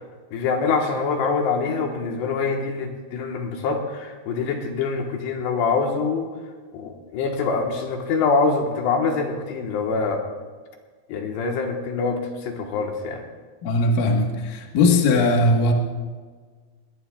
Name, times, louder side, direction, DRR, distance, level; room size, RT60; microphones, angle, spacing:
voice 1, 0.3-6.3 6.7-10.2 11.1-13.2, left 4 dB, 80° left, 2 dB, 3.4 m, -24 dB
voice 2, 13.6-15.7, left 2 dB, 60° left, 1 dB, 2.8 m, -19 dB
22.0 x 21.0 x 2.4 m, 1.5 s
omnidirectional pair, 4.9 m